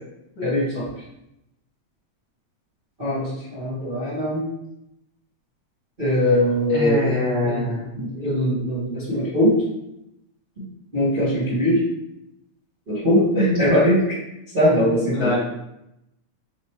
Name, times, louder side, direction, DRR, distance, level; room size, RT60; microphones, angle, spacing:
voice 1, 0.4-0.8 3.0-4.5 6.0-7.0 7.4-9.5 10.9-11.8 12.9-14.0 14.5-15.3, equal, 25° right, -12 dB, 1.2 m, -21 dB
voice 2, 6.7-7.8 15.1-15.4, left 1 dB, 50° left, -9 dB, 1.9 m, -24 dB
4.8 x 3.1 x 3.0 m, 0.85 s
omnidirectional pair, 3.3 m